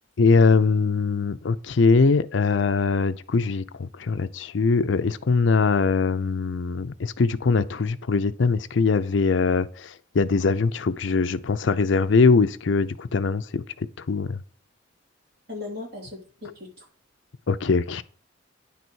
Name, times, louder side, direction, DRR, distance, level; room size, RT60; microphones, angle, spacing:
voice 1, 0.2-14.4 17.5-18.0, left 4 dB, 65° left, 0.5 m, -22 dB
voice 2, 15.5-16.9, left 3 dB, 50° right, 3.0 m, -37 dB
9.9 x 4.1 x 6.1 m
head